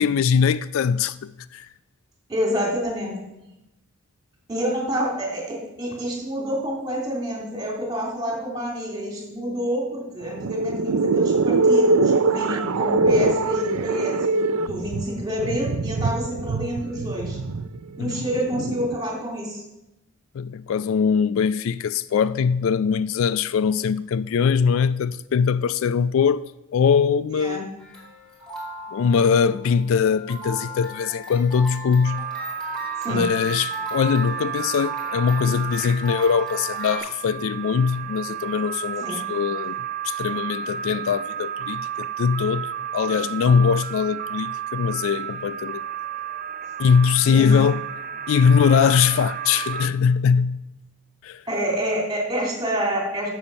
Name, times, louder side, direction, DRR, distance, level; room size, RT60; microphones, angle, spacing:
voice 1, 0.0-1.7 18.0-18.2 20.3-27.7 28.9-32.2 33.1-39.8 40.0-45.8 46.8-47.8 48.3-50.6 51.2-51.4, left 6 dB, 65° left, 0.3 m, -21 dB
voice 2, 2.3-3.1 4.5-17.4 18.0-19.6 27.3-27.6 33.0-33.3 39.0-39.2 47.2-47.5 51.5-53.3, equal, 20° right, 3.0 m, -28 dB
sound 1, 10.2-19.0, right 3 dB, 85° right, 0.5 m, -23 dB
sound 2, 27.8-37.0, left 1 dB, 5° left, 2.6 m, -38 dB
sound 3, 32.0-49.9, right 8 dB, 40° right, 0.7 m, -32 dB
12.0 x 7.1 x 5.4 m
head